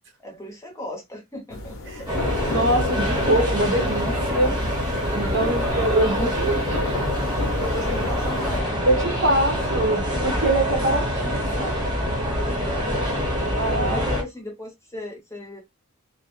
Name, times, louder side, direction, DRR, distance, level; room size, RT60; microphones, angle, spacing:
voice 1, 0.2-2.3 5.1-6.3 7.6-9.5 9.9-10.2 12.7-13.2 13.4-15.6, left 1 dB, 15° left, 0.6 m, -37 dB
sound 1, 1.5-8.6, left 3 dB, 65° left, 0.6 m, -34 dB
sound 2, 2.1-14.2, equal, 20° right, 0.9 m, -25 dB
voice 2, 2.4-4.6 5.1-6.6 8.8-11.8 13.3-14.0, right 1 dB, 55° right, 0.7 m, -24 dB
2.3 x 2.0 x 2.8 m
head